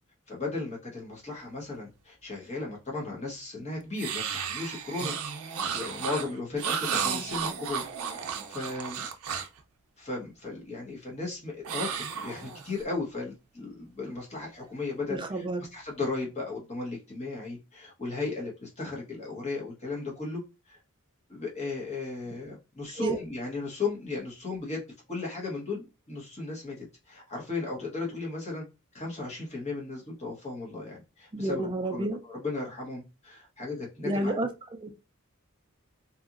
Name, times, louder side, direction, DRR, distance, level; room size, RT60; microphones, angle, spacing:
voice 1, 0.3-5.1 5.4-7.8 8.2-9.1 10.0-15.4 15.7-20.4 20.7-20.8 21.3-24.8 25.1-28.6 28.9-34.4, left 3 dB, 30° left, 1.1 m, -36 dB
sound 1, 4.0-9.6 11.6-12.8, right 7 dB, 80° right, 0.5 m, -33 dB
voice 2, 15.1-15.7 23.0-23.2 31.3-32.2 34.0-34.9, right 2 dB, 20° right, 0.3 m, -30 dB
2.8 x 2.5 x 2.5 m
head